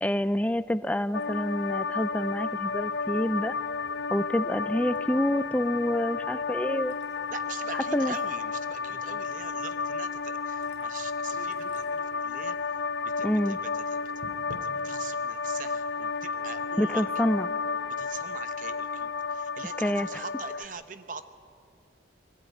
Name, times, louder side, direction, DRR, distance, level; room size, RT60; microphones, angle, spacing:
voice 1, 0.0-3.6 4.1-7.0 7.9-8.1 13.2-13.6 16.8-17.5 19.8-20.2, equal, 10° left, 14 dB, 0.5 m, -27 dB
sound 1, 1.1-20.6, left 5 dB, 70° left, 0.5 m, -32 dB
sound 2, 2.1-18.4, equal, 70° right, 2.3 m, -56 dB
sound 3, 4.8-7.2 7.4-7.6 7.9-10.2 10.6-12.6 13.0-13.7 14.0-14.5 14.9-15.3 16.3-17.0, left 1 dB, 25° left, 2.8 m, -57 dB
voice 2, 7.3-12.8 13.2-14.0 14.6-17.1 18.0-21.2, right 5 dB, 45° right, 10 dB, 0.8 m, -43 dB
21.5 x 17.5 x 9.2 m, 2.6 s
head